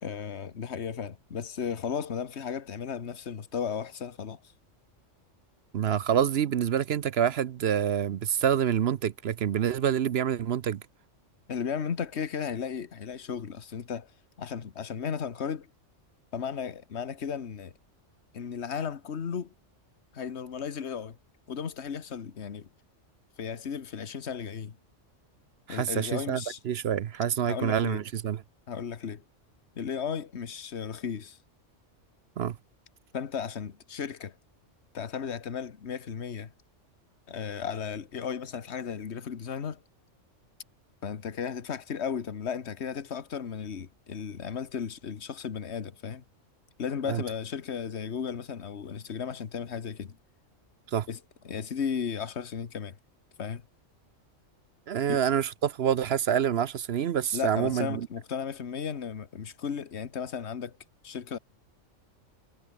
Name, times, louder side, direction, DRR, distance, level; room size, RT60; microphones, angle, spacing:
voice 1, 0.0-4.4 11.5-14.1 14.4-15.7 16.3-17.8 18.3-19.5 20.1-21.2 21.5-22.7 23.4-24.8 25.7-26.6 27.4-28.0 28.7-29.2 29.7-31.4 33.1-34.3 34.9-36.5 37.3-39.8 41.0-46.2 46.8-50.2 51.1-53.0 53.4-53.6 55.1-55.2 57.3-60.8 61.0-61.4, left 7 dB, 60° left, 1.6 m, -35 dB
voice 2, 5.7-10.8 25.7-28.4 32.4-32.6 47.1-47.2 50.9-51.1 54.9-58.1, right 9 dB, 60° right, 0.9 m, -27 dB
omnidirectional pair, 1.3 m